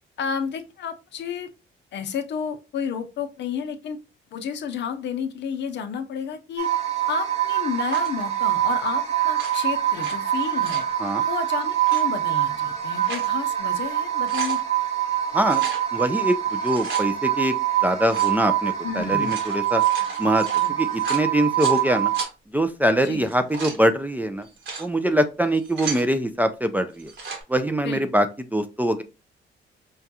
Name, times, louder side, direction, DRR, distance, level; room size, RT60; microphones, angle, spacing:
voice 1, 0.2-1.5 1.9-4.0 4.3-6.7 7.1-10.8 11.3-14.6 18.8-19.4 20.1-20.2 20.6-20.8 23.0-23.3 27.8-28.0, left 7 dB, 65° left, 9 dB, 0.6 m, -31 dB
sound 1, 6.6-22.2, right 12 dB, 35° right, 1.1 m, -24 dB
sound 2, 7.9-8.2 9.2-10.1 10.5-10.9 11.7-12.0 12.7-13.3 13.7-13.8 14.1-14.6 15.4-15.8 16.5-17.1 18.0-18.4 19.1-21.8 22.1-22.3 23.2-23.8 24.4-24.9 25.4-26.1 26.9-27.4, right 4 dB, 70° right, 1.3 m, -35 dB
voice 2, 15.9-17.6 17.8-19.8 20.2-20.5 20.8-22.1 22.5-24.5 24.8-27.1 27.5-29.0, right 1 dB, 10° right, 7 dB, 0.3 m, -23 dB
4.8 x 2.2 x 2.7 m, 0.29 s
cardioid pair, 90°, 20 cm